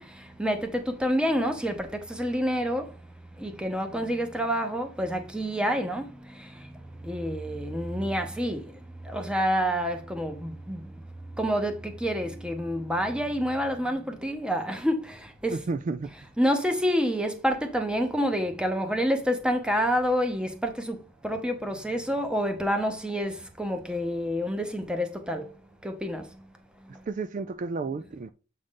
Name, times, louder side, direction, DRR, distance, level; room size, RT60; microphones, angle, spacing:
voice 1, 0.0-3.0 3.3-11.0 11.3-15.6 16.4-25.5 25.8-26.5 26.8-27.0, equal, 5° right, 0.8 m, -28 dB
voice 2, 15.5-16.1 27.1-28.3, right 4 dB, 40° right, 0.3 m, -32 dB
7.6 x 3.8 x 3.7 m
head